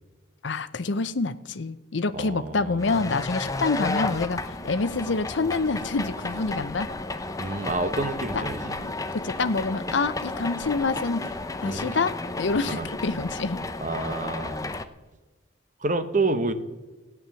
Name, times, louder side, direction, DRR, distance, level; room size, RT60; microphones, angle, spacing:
voice 1, 0.4-6.9 8.3-8.4 8.8-11.3 11.6-13.6, left 3 dB, 65° left, 13 dB, 0.7 m, -27 dB
voice 2, 2.1-2.9 7.4-8.8 11.6-12.0 12.6-12.9 13.8-14.6 15.8-16.5, right 2 dB, 40° right, 9 dB, 0.9 m, -28 dB
sound 1, 2.8-14.8, left 2 dB, 15° left, 0.6 m, -33 dB
14.5 x 9.2 x 6.9 m, 1.2 s
head